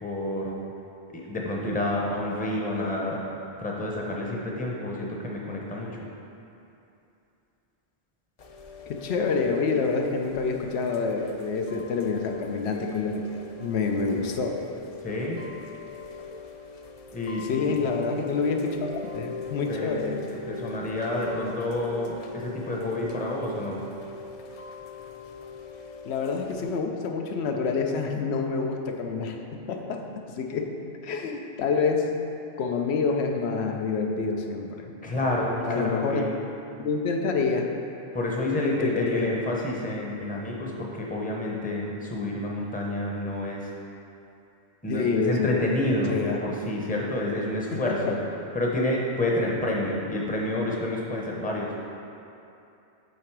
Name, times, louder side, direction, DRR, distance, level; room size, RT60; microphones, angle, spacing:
voice 1, 0.0-0.6 1.1-3.3 3.6-6.1 15.0-15.4 17.1-17.8 19.7-23.9 35.0-36.3 38.1-43.7 44.8-48.2 48.5-51.7, left 1 dB, 10° left, -2 dB, 0.6 m, -29 dB
Chime / Rain, 8.4-26.8, left 3 dB, 55° left, 0.4 m, -41 dB
voice 2, 8.9-14.7 17.4-20.2 26.0-32.2 32.6-34.9 35.2-36.3 36.8-37.8 38.6-39.3 44.9-45.7 46.1-46.4 47.7-48.2, left 4 dB, 80° left, 3 dB, 0.8 m, -28 dB
8.0 x 3.8 x 4.6 m, 2.8 s
omnidirectional pair, 1.1 m